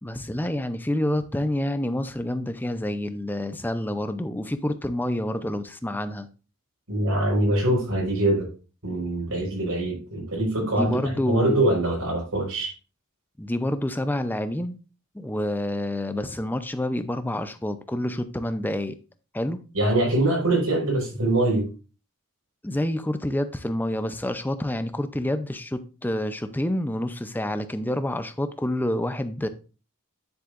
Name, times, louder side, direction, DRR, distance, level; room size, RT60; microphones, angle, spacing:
voice 1, 0.0-6.3 10.6-11.7 13.4-14.8 15.1-19.0 19.3-19.6 22.6-29.5, left 1 dB, 10° left, 0.6 m, -28 dB
voice 2, 6.9-8.5 8.8-12.7 19.7-21.6, right 1 dB, 80° right, 4.8 m, -23 dB
9.7 x 7.7 x 2.6 m
head